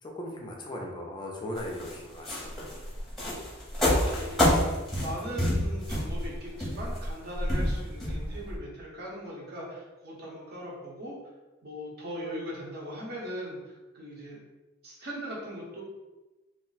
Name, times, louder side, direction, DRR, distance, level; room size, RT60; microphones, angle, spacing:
voice 1, 0.0-2.7, left 1 dB, 20° left, -1 dB, 0.4 m, -38 dB
sound 1, 1.6-8.6, left 1 dB, ahead, 0.7 m, -28 dB
voice 2, 3.8-11.1 11.6-14.4 14.8-15.8, equal, 50° right, -4 dB, 0.8 m, -40 dB
2.4 x 2.0 x 3.9 m, 1.1 s
head